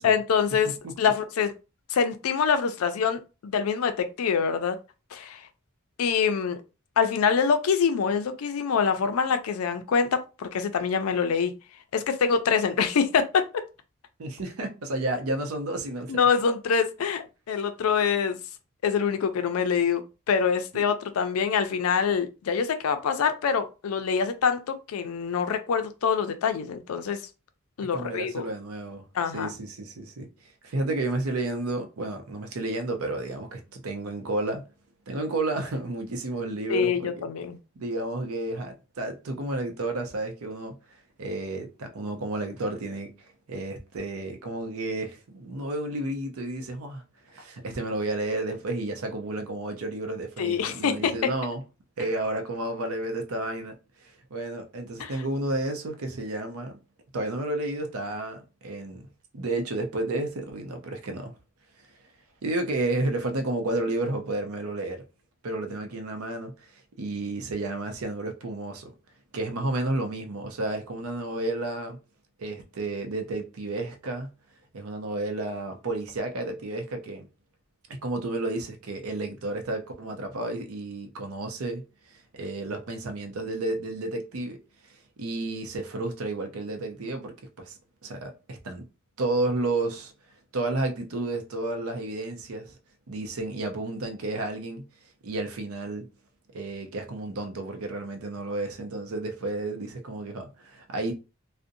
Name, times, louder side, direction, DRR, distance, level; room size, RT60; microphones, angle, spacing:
voice 1, 0.0-1.5 1.9-4.8 5.1-5.4 6.0-6.6 7.0-11.5 11.9-13.6 16.1-18.4 18.8-20.0 20.3-27.2 27.8-28.4 29.1-29.5 36.7-37.6 50.4-51.3 55.0-55.1, left 6 dB, 85° left, 0.4 m, -25 dB
voice 2, 14.2-16.1 20.7-20.8 27.9-29.1 29.3-30.3 30.6-34.6 35.1-37.2 37.8-40.8 41.2-43.1 43.5-47.0 47.3-51.6 52.0-53.7 54.0-56.8 57.1-59.1 59.3-61.3 62.4-65.0 65.4-66.7 67.0-68.9 69.3-72.0 72.4-74.3 74.7-77.3 77.9-81.8 82.1-84.6 85.2-88.8 89.2-90.1 90.5-92.8 93.1-94.9 95.2-96.1 96.5-101.1, right 2 dB, 85° right, 0.6 m, -31 dB
2.5 x 2.1 x 2.6 m
head